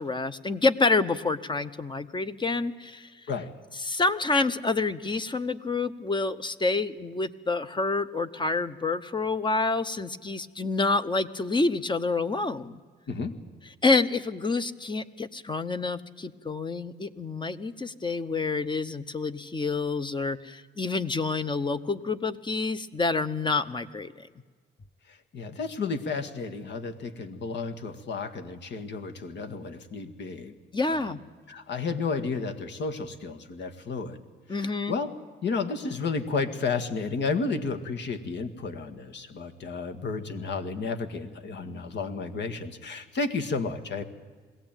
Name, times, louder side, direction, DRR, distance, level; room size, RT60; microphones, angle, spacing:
voice 1, 0.0-3.1 3.8-12.8 13.8-24.3 30.7-31.2 34.5-34.9, left 3 dB, 25° left, 11 dB, 0.9 m, -28 dB
voice 2, 25.1-30.5 30.9-31.2 31.5-34.2 34.5-35.1 35.4-44.0, left 4 dB, 65° left, 7 dB, 1.8 m, -32 dB
21.5 x 17.0 x 9.0 m, 1.5 s
cardioid pair, 90°, 20 cm